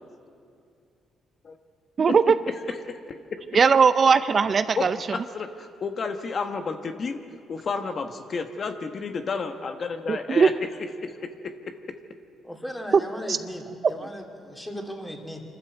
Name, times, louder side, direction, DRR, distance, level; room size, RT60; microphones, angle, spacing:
voice 1, 2.0-2.3 3.5-5.0 10.1-10.5 13.3-13.4, right 5 dB, 45° right, 13 dB, 0.5 m, -19 dB
voice 2, 2.7-3.0 4.8-4.9 5.1-7.2 7.5-10.5 11.0-11.3, left 4 dB, 45° left, 7 dB, 1.1 m, -31 dB
voice 3, 12.4-15.4, equal, 5° left, 3 dB, 2.8 m, -37 dB
25.5 x 13.0 x 8.1 m, 2.4 s
cardioid pair, 90°, 0 cm